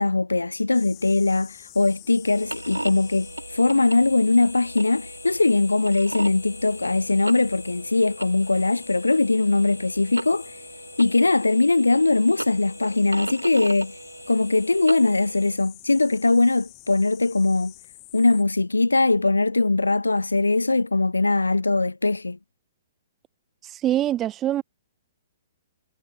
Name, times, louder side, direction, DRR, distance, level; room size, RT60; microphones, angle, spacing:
voice 1, 0.0-10.6 11.0-13.9 14.3-17.7 18.1-22.4, left 3 dB, 85° left, 0.6 m, -21 dB
sound 1, 0.7-18.4, left 27 dB, 30° left, 4.0 m, -47 dB
sound 2, 2.2-15.6, right 2 dB, 90° right, 1.0 m, -37 dB
voice 2, 23.6-24.6, right 12 dB, 20° right, 0.5 m, -24 dB
figure-of-eight pair, 120°, 0 cm